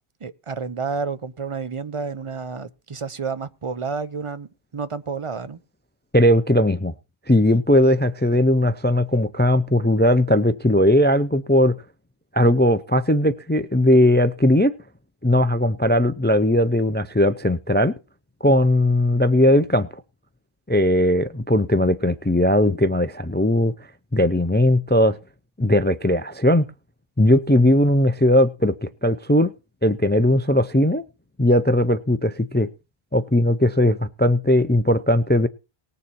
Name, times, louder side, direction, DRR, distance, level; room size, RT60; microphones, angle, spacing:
voice 1, 0.2-4.5 4.7-5.6, right 5 dB, 35° right, 0.6 m, -30 dB
voice 2, 6.1-6.9 7.3-11.7 12.3-14.7 15.2-17.9 18.4-19.9 20.7-23.7 24.1-25.2 25.6-26.7 27.2-29.5 29.8-31.0 31.4-32.7 33.1-35.5, left 1 dB, 15° left, 0.3 m, -18 dB
19.0 x 6.9 x 4.3 m
omnidirectional pair, 1.0 m